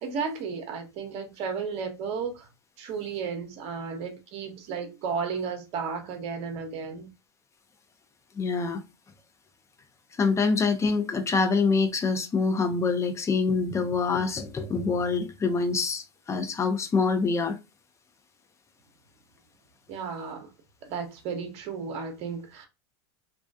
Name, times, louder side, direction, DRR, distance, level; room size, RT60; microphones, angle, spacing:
voice 1, 0.0-2.5 2.8-7.1 19.9-20.5 20.8-22.7, right 5 dB, 50° right, 0.8 m, -33 dB
voice 2, 8.4-8.8 10.2-17.6, left 4 dB, 20° left, 0.5 m, -25 dB
2.3 x 2.1 x 2.5 m
hypercardioid pair, 100°, 14 cm